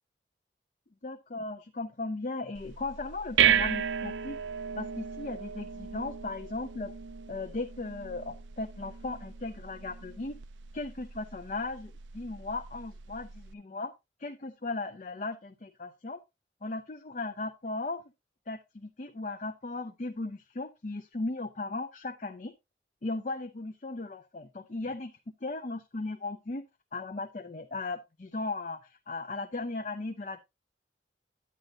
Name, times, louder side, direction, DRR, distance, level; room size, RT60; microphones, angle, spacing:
voice 1, 1.0-4.4 4.8-6.9 7.3-10.4 10.7-13.9 14.2-16.2 16.6-18.0 18.5-22.5 23.0-25.1 25.4-26.6 26.9-30.4, left 2 dB, 40° left, 6 dB, 0.5 m, -37 dB
sound 1, 2.5-13.5, right 8 dB, 85° right, 0.5 m, -34 dB
9.4 x 8.9 x 2.7 m, 0.22 s
head